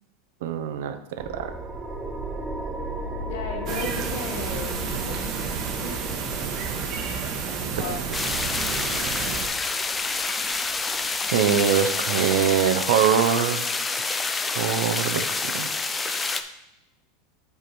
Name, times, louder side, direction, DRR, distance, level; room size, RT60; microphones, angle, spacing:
voice 1, 0.4-1.5 7.7-7.8 11.3-13.7 14.5-15.7 16.0-16.3, right 8 dB, 80° right, 9 dB, 0.7 m, -23 dB
sound 1, 1.2-12.2, right 1 dB, 15° right, 0.8 m, -36 dB
voice 2, 3.2-5.2 5.8-6.0 7.7-8.0 8.7-9.8, left 3 dB, 75° left, 2 dB, 1.6 m, -36 dB
sound 2, 3.7-9.5, right 6 dB, 45° right, 1.2 m, -30 dB
sound 3, 8.1-16.4, left 3 dB, 15° left, 0.5 m, -27 dB
5.4 x 4.8 x 5.9 m, 0.89 s
supercardioid pair, 130°, 0 cm